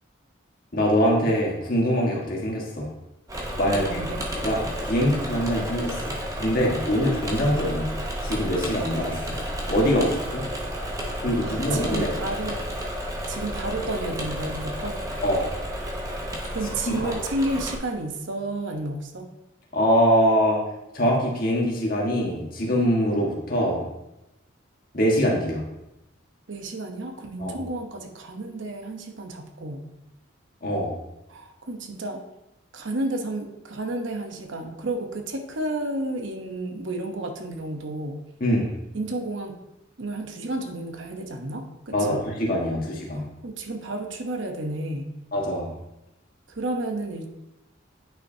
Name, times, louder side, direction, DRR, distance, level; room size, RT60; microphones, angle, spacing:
voice 1, 0.7-2.9 3.6-4.0 4.4-9.4 9.7-10.4 11.2-12.1 15.2-15.5 16.9-17.1 19.7-20.6 20.9-23.9 24.9-25.6 27.4-27.6 30.6-30.9 38.4-38.7 41.9-43.2 45.3-45.7, equal, 45° left, -2 dB, 1.5 m, -23 dB
Engine / Mechanisms, 3.3-17.8, equal, 15° right, 0.8 m, -32 dB
voice 2, 3.7-4.2 11.4-12.6 13.3-15.0 16.5-19.3 26.5-29.9 31.3-32.2 32.7-38.2 38.9-39.6 40.0-42.2 43.1-45.1 46.5-47.4, right 2 dB, 65° right, 5 dB, 0.8 m, -31 dB
9.1 x 5.7 x 2.7 m, 0.91 s
head